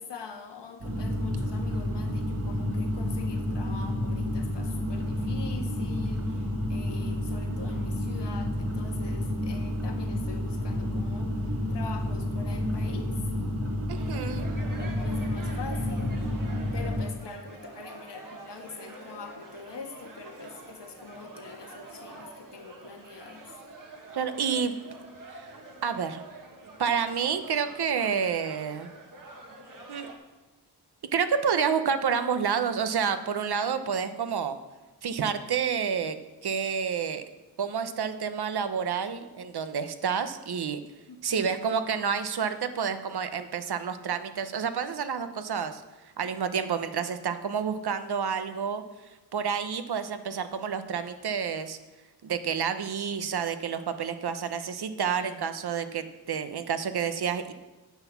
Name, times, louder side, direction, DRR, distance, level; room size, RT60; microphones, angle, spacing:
voice 1, 0.0-13.2 14.0-14.5 14.8-23.6 41.1-41.5 55.0-55.4, left 5 dB, 85° left, 4 dB, 1.5 m, -44 dB
sound 1, 0.8-17.0, left 1 dB, 35° right, 2.0 m, -30 dB
sound 2, 13.9-30.1, right 2 dB, 50° right, 1.8 m, -46 dB
voice 2, 13.9-14.5 24.1-24.8 25.3-25.4 25.8-26.2 26.8-28.9 29.9-30.1 31.1-34.6 35.0-36.2 36.4-37.2 37.6-40.8 41.2-45.8 46.2-48.8 49.3-51.8 52.2-57.5, right 6 dB, 65° right, 10 dB, 0.9 m, -29 dB
9.6 x 8.1 x 7.1 m, 1.1 s
wide cardioid pair, 175°, 41 cm